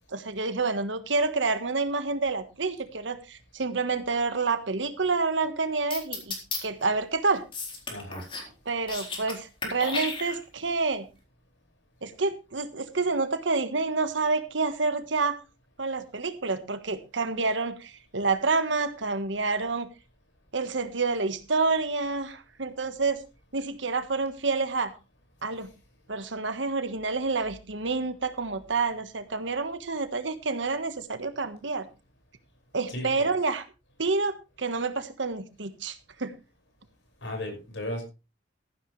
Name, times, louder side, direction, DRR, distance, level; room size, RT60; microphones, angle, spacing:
voice 1, 0.1-6.4 6.6-7.5 8.6-11.1 12.0-15.4 15.8-19.9 20.5-23.2 23.5-24.9 25.4-25.7 26.1-31.9 32.7-33.6 34.0-36.3, right 3 dB, 80° right, 10 dB, 1.5 m, -28 dB
sound 1, 5.9-6.6 7.5-8.5 8.8-9.3 9.6-10.6, left 3 dB, 30° left, 3.9 m, -33 dB
voice 2, 7.9-8.2 32.9-33.3 37.2-38.1, left 1 dB, 80° left, 3 dB, 5.9 m, -35 dB
14.5 x 11.5 x 3.3 m, 0.29 s
head